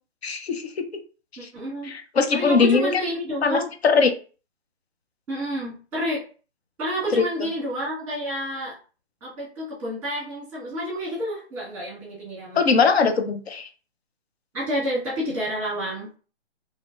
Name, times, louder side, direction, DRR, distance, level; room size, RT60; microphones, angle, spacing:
voice 1, 0.2-0.8 1.4-1.5 1.8-3.0 3.4-4.1 7.1-7.2 12.5-13.7, left 5 dB, 65° left, 7 dB, 0.7 m, -21 dB
voice 2, 1.4-1.9 2.3-3.7 5.3-6.2 6.8-8.8 9.2-12.6 14.5-16.1, equal, 5° right, -6 dB, 1.6 m, -29 dB
3.1 x 2.8 x 2.5 m, 0.37 s
hypercardioid pair, 150°, 34 cm